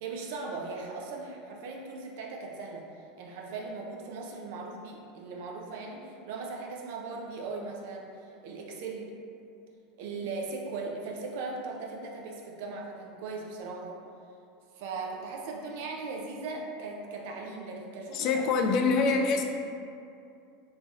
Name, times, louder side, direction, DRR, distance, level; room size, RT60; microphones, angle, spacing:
voice 1, 0.0-2.8 3.2-9.1 10.0-14.0 14.7-18.3, right 3 dB, 70° right, -1 dB, 0.4 m, -38 dB
voice 2, 18.1-19.4, left 4 dB, 55° left, 3 dB, 0.3 m, -25 dB
3.0 x 2.6 x 2.4 m, 2.5 s
hypercardioid pair, 95°, 0 cm